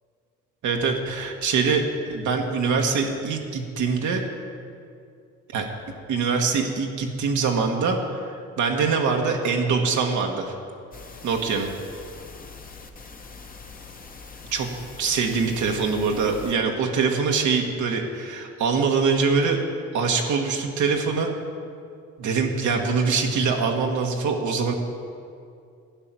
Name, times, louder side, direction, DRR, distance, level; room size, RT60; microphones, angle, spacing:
voice 1, 0.6-4.2 5.5-5.7 6.1-10.5 11.2-11.7 14.5-14.7 15.0-19.6 19.9-21.3 22.2-24.7, right 5 dB, 75° right, 2 dB, 1.4 m, -23 dB
sound 1, 10.9-16.5, left 4 dB, 30° left, 1.1 m, -43 dB
12.0 x 5.7 x 9.1 m, 2.4 s
cardioid pair, 90°, 30 cm